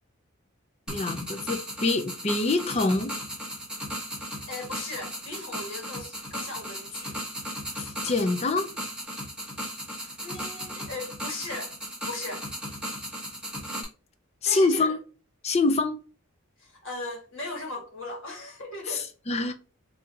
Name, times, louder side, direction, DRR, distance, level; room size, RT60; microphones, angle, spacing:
voice 1, 0.9-3.2 7.7-8.7 14.4-15.0 15.4-16.0 18.9-19.5, left 3 dB, 30° left, 0.5 m, -25 dB
sound 1, 0.9-13.8, equal, 5° right, 1.1 m, -36 dB
voice 2, 4.5-7.2 10.0-11.7 12.0-12.5 14.4-15.0 16.6-19.1, left 2 dB, 55° left, 1.5 m, -38 dB
4.2 x 2.8 x 2.4 m
head